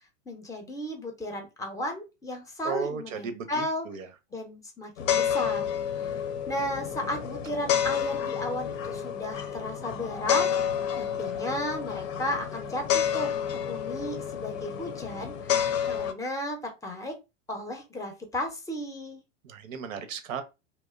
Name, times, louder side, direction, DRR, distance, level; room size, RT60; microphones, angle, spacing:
voice 1, 0.3-3.9 4.3-5.6 6.0-6.2 6.5-17.1 17.5-19.2, left 1 dB, 10° left, 0.5 m, -34 dB
voice 2, 2.6-4.1 19.5-20.4, right 6 dB, 85° right, 0.6 m, -35 dB
sound 1, 5.0-16.1, left 8 dB, 75° left, 0.6 m, -30 dB
2.8 x 2.0 x 2.3 m
hypercardioid pair, 115°, 38 cm